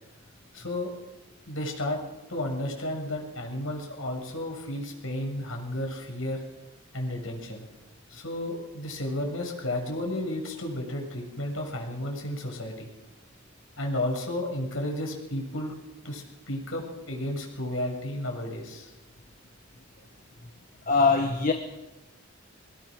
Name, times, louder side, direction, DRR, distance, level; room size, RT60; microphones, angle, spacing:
voice 1, 0.5-0.9 1.5-2.0 2.3-6.4 6.9-7.7 8.1-12.9 13.8-15.7 16.0-18.9, left 1 dB, 85° left, 1 dB, 6.9 m, -32 dB
voice 2, 20.9-21.5, left 4 dB, 40° left, 5 dB, 1.6 m, -22 dB
23.5 x 19.5 x 6.6 m, 1.0 s
head